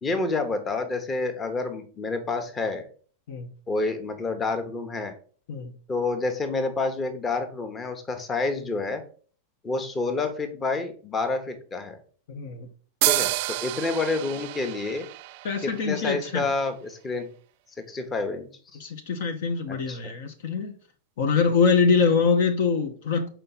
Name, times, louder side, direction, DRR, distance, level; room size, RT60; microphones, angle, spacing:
voice 1, 0.0-2.9 3.7-5.1 5.9-9.0 9.6-12.0 13.1-15.1 15.6-17.3 17.9-18.5 19.7-20.1, left 3 dB, 20° left, 1.1 m, -28 dB
voice 2, 12.3-12.7 15.4-16.5 18.8-20.7 21.2-23.3, left 5 dB, 55° left, 0.9 m, -24 dB
sound 1, 13.0-16.6, right 18 dB, 50° right, 0.3 m, -29 dB
6.6 x 4.5 x 4.1 m
figure-of-eight pair, 90°, 0 cm